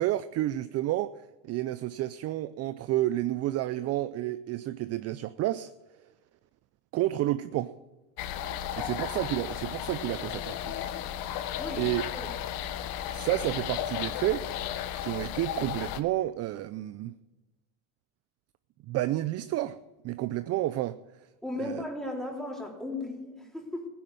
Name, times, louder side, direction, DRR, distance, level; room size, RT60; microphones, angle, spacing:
voice 1, 0.0-5.7 6.9-7.7 8.8-10.8 11.3-11.5 11.8-12.0 13.1-17.2 18.9-19.8 20.0-21.0 21.6-21.8, right 15 dB, 40° right, 13 dB, 0.5 m, -30 dB
sound 1, 8.2-16.0, left 10 dB, 60° left, 1.2 m, -34 dB
voice 2, 11.6-12.3 21.4-23.9, left 1 dB, ahead, 0 dB, 3.6 m, -36 dB
16.0 x 10.0 x 7.7 m, 1.1 s
supercardioid pair, 125°, 40 cm